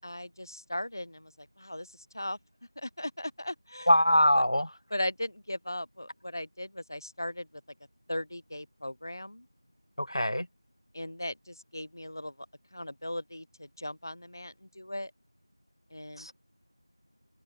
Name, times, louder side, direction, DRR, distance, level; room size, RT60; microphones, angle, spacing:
voice 1, 0.0-2.4 2.8-3.9 4.3-4.4 4.9-7.5 8.1-9.5 10.9-12.3 12.7-15.1 15.9-16.3, left 1 dB, 45° left, 6.2 m, -38 dB
voice 2, 3.9-4.7 10.0-10.5 16.2-16.3, equal, 80° left, 2.5 m, -23 dB
figure-of-eight pair, 175°, 3 cm